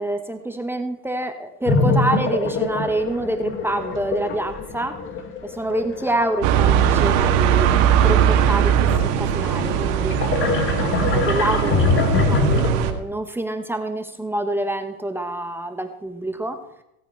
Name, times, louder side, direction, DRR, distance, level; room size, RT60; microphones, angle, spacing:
voice 1, 0.0-5.0 5.4-7.7 8.0-10.2 10.8-16.6, right 1 dB, 5° right, 7 dB, 0.9 m, -27 dB
sound 1, 1.7-7.6 8.1-12.7, left 3 dB, 25° left, 1.6 m, -24 dB
sound 2, 6.4-12.9, right 9 dB, 60° right, 1.9 m, -19 dB
17.0 x 8.9 x 4.4 m, 0.84 s
supercardioid pair, 125°, 45 cm